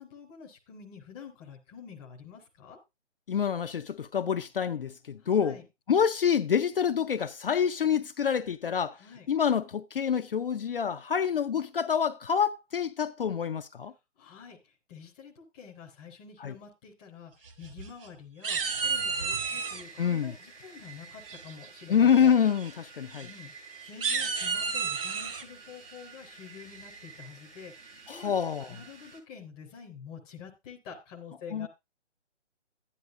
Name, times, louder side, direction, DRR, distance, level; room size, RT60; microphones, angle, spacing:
voice 1, 0.0-2.8 5.2-5.7 9.0-9.3 14.2-14.6 14.9-17.3 17.6-22.3 23.2-23.5 23.8-28.3 28.7-31.7, left 6 dB, 10° left, 0.6 m, -47 dB
voice 2, 3.3-5.6 5.9-9.0 9.3-13.9 16.4-16.5 20.0-20.3 21.9-23.3 28.1-28.7 31.5-31.7, left 7 dB, 50° left, 0.5 m, -27 dB
sound 1, 17.5-18.1 18.4-19.8 21.3-21.7 22.1-22.3 22.6-22.7 23.1-23.2 23.8-25.4, right 5 dB, 50° right, 1.3 m, -31 dB
sound 2, 18.8-29.2, right 5 dB, 80° right, 6.3 m, -50 dB
11.5 x 9.7 x 2.5 m
hypercardioid pair, 150°, 36 cm